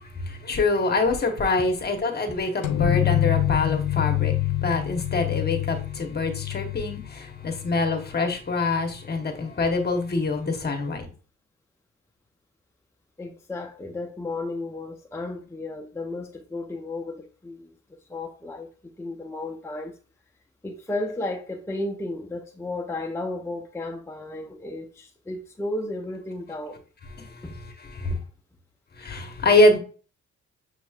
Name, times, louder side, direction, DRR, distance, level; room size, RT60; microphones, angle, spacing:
voice 1, 0.0-4.3 4.6-11.1 27.2-27.3 28.0-28.1 29.0-29.8, left 2 dB, 35° left, 1.1 m, -24 dB
sound 1, 2.6-8.2, left 14 dB, 80° left, 0.6 m, -26 dB
voice 2, 13.2-17.7 18.1-18.7 19.0-20.0 20.6-26.8 27.4-27.5 28.1-28.2, left 2 dB, 10° left, 0.6 m, -33 dB
6.4 x 3.0 x 2.3 m
cardioid pair, 90°, 30 cm